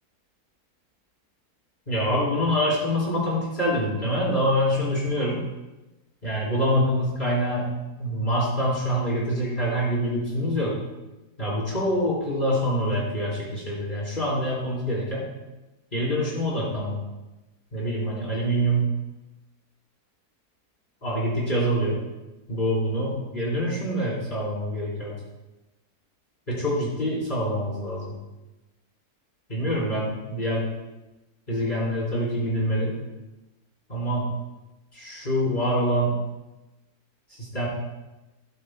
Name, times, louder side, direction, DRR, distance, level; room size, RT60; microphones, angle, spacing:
voice 1, 1.9-5.4 6.2-7.6 8.0-10.7 11.4-15.3 15.9-17.0 17.7-18.9 21.0-22.0 22.5-25.1 26.5-28.1 29.5-30.7 31.5-33.0 33.9-34.3 34.9-36.1 37.4-37.7, equal, 30° left, -7 dB, 4.1 m, -25 dB
18.5 x 8.8 x 2.2 m, 1.0 s
omnidirectional pair, 1.7 m